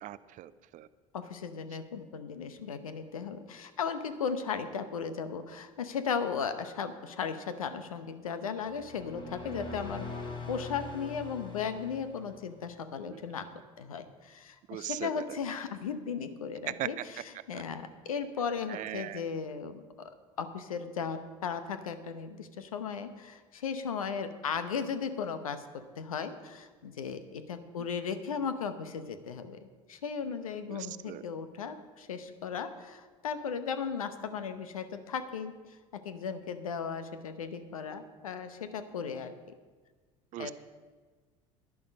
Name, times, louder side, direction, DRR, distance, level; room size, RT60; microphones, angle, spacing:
voice 1, 0.0-0.9 13.0-13.2 14.7-15.2 16.8-16.9 17.5-17.6 18.7-19.2 30.7-30.8 31.0-31.2 40.3-40.5, right 14 dB, 45° right, 16 dB, 0.6 m, -39 dB
voice 2, 1.1-10.1 10.5-13.5 13.8-19.8 20.4-25.6 26.0-29.6 29.9-35.5 36.0-39.4 40.4-40.5, left 6 dB, 80° left, 10 dB, 0.9 m, -36 dB
sound 1, 8.7-12.6, left 3 dB, 30° left, 3.8 m, -42 dB
11.0 x 11.0 x 5.2 m, 1.4 s
figure-of-eight pair, 65°, 18 cm